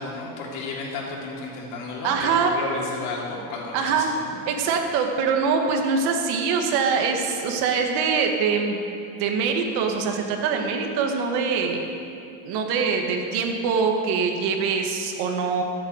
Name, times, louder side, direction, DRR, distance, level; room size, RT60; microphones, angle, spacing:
voice 1, 0.0-4.4, left 3 dB, 80° left, -3 dB, 3.4 m, -33 dB
voice 2, 2.0-2.5 3.7-4.1 4.5-8.8 9.2-11.8 12.4-15.6, right 5 dB, 80° right, 3 dB, 2.0 m, -23 dB
14.0 x 8.2 x 8.2 m, 2.6 s
cardioid pair, 125°, 38 cm